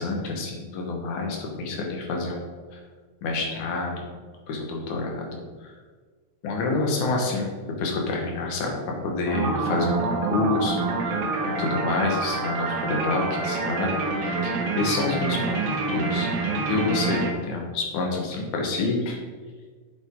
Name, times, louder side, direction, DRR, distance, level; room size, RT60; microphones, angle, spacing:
voice 1, 0.0-2.5 3.2-4.1 4.5-5.3 5.6-5.7 6.4-7.5 7.8-8.8 9.0-11.1 11.6-15.6 15.9-16.3 16.7-19.2, left 3 dB, 65° left, 0 dB, 2.6 m, -28 dB
sound 1, 9.3-17.3, right 3 dB, 60° right, 1.7 m, -27 dB
7.9 x 7.5 x 3.7 m, 1.5 s
omnidirectional pair, 3.9 m